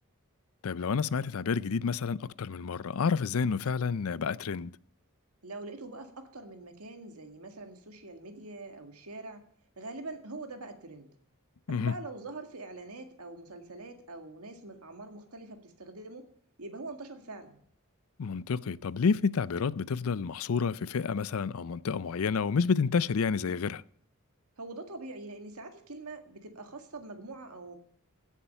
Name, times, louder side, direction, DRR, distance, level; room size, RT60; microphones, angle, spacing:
voice 1, 0.6-4.7 11.7-11.9 18.2-23.8, left 5 dB, 70° left, 0.5 m, -29 dB
voice 2, 5.4-9.4 9.8-11.1 11.7-16.2 16.6-17.6 24.6-27.8, right 2 dB, 80° right, 1.9 m, -44 dB
16.5 x 7.4 x 5.6 m
head